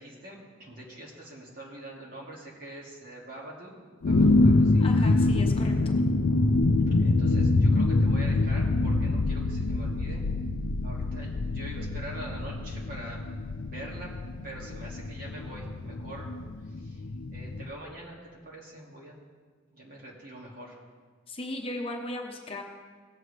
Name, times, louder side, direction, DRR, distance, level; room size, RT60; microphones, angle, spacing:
voice 1, 0.0-4.9 7.0-10.2 10.8-13.2 13.6-14.1 14.4-16.3 16.6-17.0 17.3-19.1 19.7-20.8, right 1 dB, 45° right, -4 dB, 2.4 m, -44 dB
sound 1, 4.0-17.7, left 2 dB, 70° left, 0.5 m, -25 dB
voice 2, 4.8-5.9 21.3-22.6, left 1 dB, 30° left, 2 dB, 0.9 m, -37 dB
18.0 x 7.8 x 3.3 m, 1.5 s
head